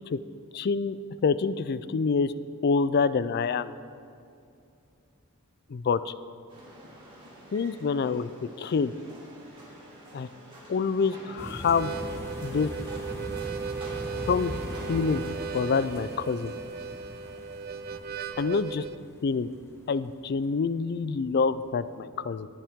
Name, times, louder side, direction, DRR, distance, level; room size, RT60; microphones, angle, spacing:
voice 1, 0.5-1.0 1.2-2.3 2.6-3.7 5.7-6.1 7.5-8.3 8.6-8.9 10.1-10.3 10.7-11.9 12.4-12.7 14.3-14.5 14.9-16.5 18.4-18.8 19.2-19.5 19.9-22.5, left 5 dB, 50° left, 15 dB, 0.4 m, -26 dB
sound 1, 6.5-15.3, right 1 dB, 25° right, 3.5 m, -48 dB
sound 2, 11.4-20.4 21.0-21.2 21.4-21.6, equal, 10° left, 1.2 m, -41 dB
Harmonica, 11.6-19.0, right 5 dB, 45° right, 0.4 m, -37 dB
19.0 x 8.6 x 3.6 m, 2.5 s
head